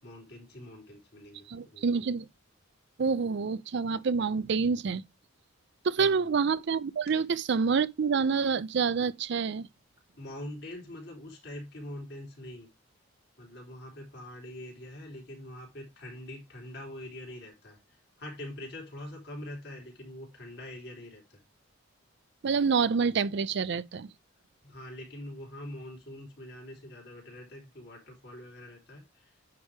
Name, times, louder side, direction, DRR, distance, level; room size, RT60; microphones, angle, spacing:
voice 1, 0.0-1.9 6.0-6.3 7.2-7.3 10.2-12.7 13.4-21.4 24.6-29.4, left 1 dB, 55° left, 3.6 m, -44 dB
voice 2, 1.5-2.3 3.0-5.0 5.8-9.7 22.4-24.1, right 5 dB, 60° right, 0.4 m, -27 dB
9.5 x 3.4 x 4.6 m
head